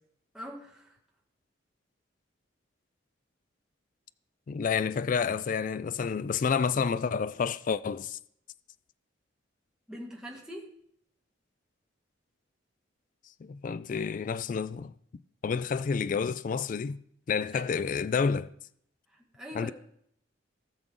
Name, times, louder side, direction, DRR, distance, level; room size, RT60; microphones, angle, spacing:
voice 1, 0.3-1.0 9.9-10.6 17.5-17.6 19.1-19.7, equal, 5° right, 1.9 m, -42 dB
voice 2, 4.5-8.2 13.4-14.9 15.4-17.0 17.3-18.5 19.5-19.7, left 6 dB, 45° left, 0.3 m, -29 dB
18.5 x 6.2 x 3.8 m
head